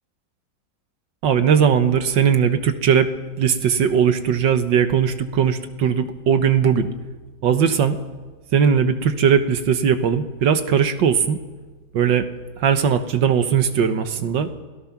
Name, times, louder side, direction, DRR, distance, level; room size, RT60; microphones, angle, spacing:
voice 1, 1.2-3.1 3.4-6.9 7.4-8.0 8.5-11.4 11.9-12.3 12.6-14.5, right 7 dB, 70° right, 9 dB, 1.8 m, -19 dB
28.0 x 17.0 x 6.0 m, 1.3 s
omnidirectional pair, 2.1 m